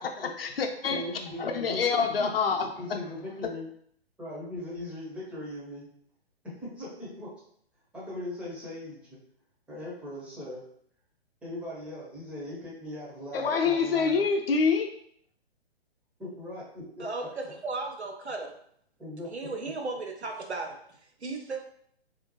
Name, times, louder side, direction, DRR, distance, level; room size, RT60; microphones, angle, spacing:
voice 1, 0.0-1.0 1.4-3.0 3.4-3.5 13.3-14.9, left 5 dB, 60° left, 4 dB, 0.6 m, -27 dB
voice 2, 0.9-2.3 2.8-3.7 4.2-5.9 6.6-7.3 7.9-9.2 9.7-10.7 11.4-14.2 16.2-17.1 19.0-19.3, left 1 dB, 5° right, -7 dB, 0.6 m, -39 dB
voice 3, 17.0-18.5 19.3-20.8 21.2-21.6, right 3 dB, 85° right, 2 dB, 0.8 m, -35 dB
3.4 x 2.7 x 2.9 m, 0.66 s
figure-of-eight pair, 125°, 32 cm